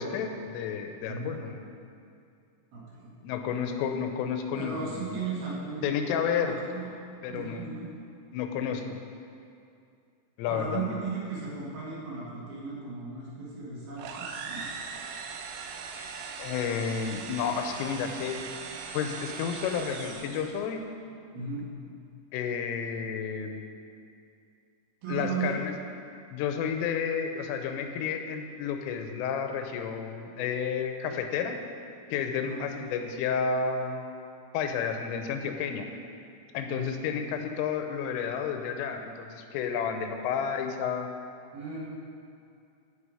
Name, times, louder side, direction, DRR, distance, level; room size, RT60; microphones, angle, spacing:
voice 1, 0.0-1.6 3.2-5.3 5.8-6.5 7.2-7.7 8.3-9.0 10.4-11.0 16.4-18.4 18.9-20.8 22.3-23.7 25.1-25.7 26.3-31.6 32.1-34.2 34.5-35.9 36.5-41.1, left 7 dB, 85° left, 5 dB, 3.3 m, -31 dB
voice 2, 2.7-3.1 4.5-5.8 6.3-6.9 7.3-7.9 10.5-14.7 21.3-21.6 25.0-25.6 32.4-33.0 36.7-37.0 37.3-37.4 41.5-42.0, right 4 dB, 60° right, -7 dB, 3.2 m, -36 dB
sound 1, 14.0-20.7, right 5 dB, 85° right, 3.3 m, -40 dB
15.0 x 5.7 x 4.9 m, 2.5 s
omnidirectional pair, 5.7 m